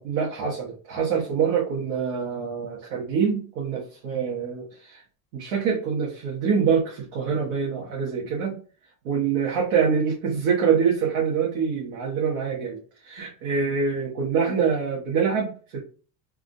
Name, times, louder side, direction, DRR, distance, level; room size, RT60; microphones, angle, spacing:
voice 1, 0.0-5.0 5.3-8.6 9.0-12.8 13.0-15.8, right 6 dB, 75° right, -4 dB, 1.3 m, -25 dB
3.6 x 2.4 x 2.5 m, 0.38 s
supercardioid pair, 120°, 43 cm